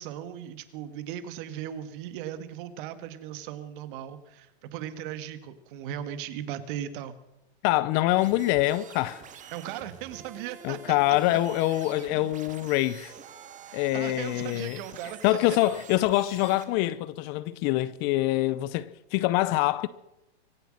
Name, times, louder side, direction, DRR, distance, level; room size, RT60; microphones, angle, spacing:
voice 1, 0.0-7.2 9.5-11.4 13.6-15.6, right 10 dB, 50° right, 1.7 m, -38 dB
voice 2, 7.6-9.2 10.6-13.1 13.7-14.8 15.2-19.9, left 16 dB, 30° left, 0.5 m, -25 dB
sound 1, 8.2-16.6, right 8 dB, 20° right, 1.6 m, -47 dB
24.0 x 8.3 x 6.4 m
hypercardioid pair, 130°, 33 cm